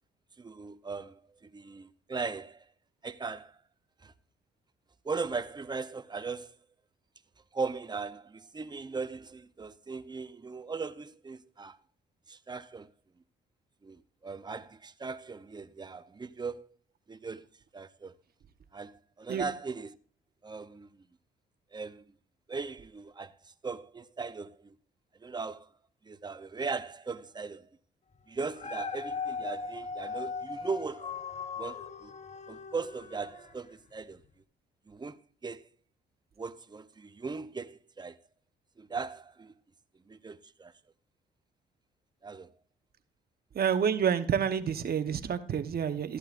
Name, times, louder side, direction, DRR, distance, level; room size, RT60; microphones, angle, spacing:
voice 1, 0.4-2.7 3.0-3.6 4.0-4.1 5.0-6.5 7.5-11.8 12.3-12.9 13.8-16.7 17.1-17.5 17.7-18.1 18.7-20.0 20.4-21.0 21.7-22.0 22.5-24.7 25.2-25.7 26.0-27.6 28.3-31.1 31.6-32.1 32.5-34.2 34.9-35.2 35.4-35.7 36.4-38.2 38.8-39.5 40.1-40.7 42.2-42.5, right 4 dB, 20° right, 0.7 m, -38 dB
Dog, 28.4-33.7 34.2-34.3, left 5 dB, 35° left, 0.9 m, -39 dB
voice 2, 43.5-46.2, right 7 dB, 50° right, 1.0 m, -28 dB
14.0 x 11.0 x 2.5 m
cardioid pair, 90°, 20 cm